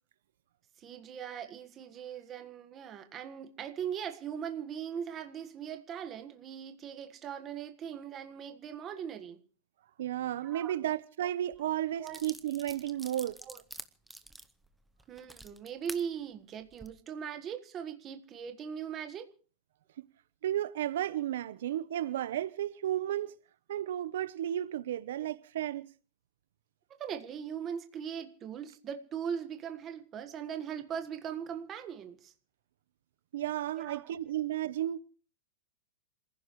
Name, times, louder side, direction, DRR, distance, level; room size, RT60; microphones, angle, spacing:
voice 1, 0.8-9.4 10.4-10.9 11.2-11.3 12.0-12.2 13.4-13.6 15.1-19.3 27.0-32.3 33.8-34.1, right 8 dB, 20° right, 1.5 m, -40 dB
voice 2, 10.0-13.4 20.4-23.3 23.7-25.9 33.3-35.0, right 12 dB, 70° right, 0.8 m, -33 dB
sound 1, 11.5-11.6 12.1-16.0 16.6-16.9, right 1 dB, ahead, 0.7 m, -47 dB
27.0 x 15.5 x 3.1 m
supercardioid pair, 175°, 0 cm